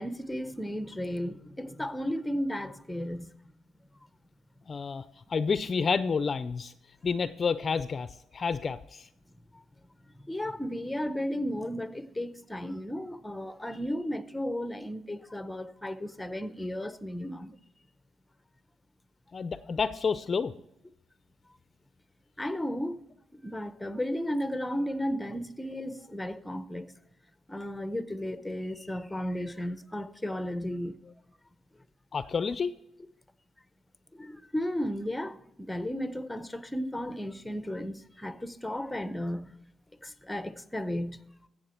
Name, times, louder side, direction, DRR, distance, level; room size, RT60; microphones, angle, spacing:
voice 1, 0.0-3.4 9.5-9.6 10.1-17.5 22.4-23.0 23.4-26.9 27.5-31.0 34.1-39.5 40.0-41.3, equal, 10° left, 0.8 m, -34 dB
voice 2, 4.7-5.0 5.3-6.7 7.0-8.1 8.3-9.1 19.3-20.5 32.1-32.7, left 5 dB, 40° left, 0.5 m, -29 dB
14.5 x 7.7 x 4.4 m
cardioid pair, 90°, 0 cm